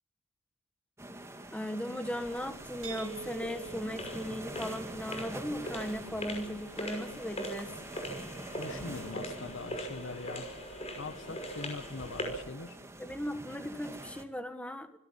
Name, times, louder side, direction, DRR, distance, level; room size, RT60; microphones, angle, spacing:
sound 1, 1.0-14.2, right 1 dB, 15° right, 1.9 m, -46 dB
voice 1, 1.5-7.7 13.0-15.0, equal, 5° left, 1.5 m, -37 dB
sound 2, 2.2-12.5, equal, 30° left, 5.6 m, -42 dB
sound 3, 2.8-8.6, right 6 dB, 70° right, 1.7 m, -49 dB
voice 2, 8.6-10.5 11.0-12.8, left 3 dB, 60° left, 1.0 m, -42 dB
26.5 x 17.0 x 7.2 m
head